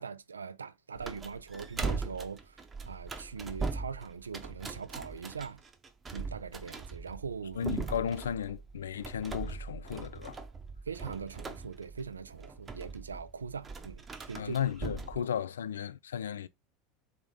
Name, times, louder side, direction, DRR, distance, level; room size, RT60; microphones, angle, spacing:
voice 1, 0.0-5.6 6.1-7.7 10.9-14.6 15.2-15.3, right 6 dB, 80° right, 0.3 m, -41 dB
sound 1, 0.9-15.2, right 4 dB, 25° right, 0.8 m, -40 dB
voice 2, 7.6-10.4 14.3-16.5, left 8 dB, 75° left, 0.3 m, -34 dB
3.6 x 3.4 x 3.9 m
figure-of-eight pair, 80°, 0 cm